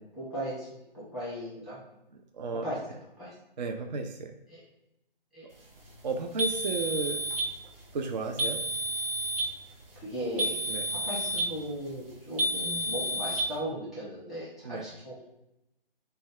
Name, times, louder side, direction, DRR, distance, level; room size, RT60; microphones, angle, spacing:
voice 1, 0.2-1.8 2.6-2.8 3.2-3.3 4.5-4.6 5.3-5.5 9.9-10.6 10.9-15.2, equal, ahead, -10 dB, 1.0 m, -37 dB
voice 2, 2.3-2.6 3.6-4.3 6.0-7.2 7.9-8.6 10.7-10.9 14.6-14.9, right 4 dB, 50° right, 5 dB, 0.4 m, -33 dB
sound 1, 6.4-7.5 8.4-9.5 10.4-11.5 12.4-13.5, equal, 70° right, 1.0 m, -30 dB
3.9 x 2.2 x 3.5 m, 0.88 s
figure-of-eight pair, 145°, 29 cm